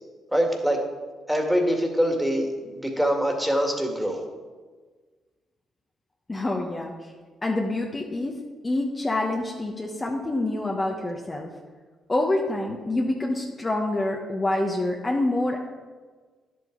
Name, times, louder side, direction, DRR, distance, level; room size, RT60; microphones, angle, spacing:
voice 1, 0.3-0.8 1.3-4.2, equal, 5° right, 2 dB, 2.2 m, -24 dB
voice 2, 6.3-7.1 7.4-8.4 8.6-11.5 12.1-15.6, left 2 dB, 25° left, 0 dB, 1.2 m, -26 dB
10.5 x 7.8 x 4.0 m, 1.4 s
supercardioid pair, 55°, 0 cm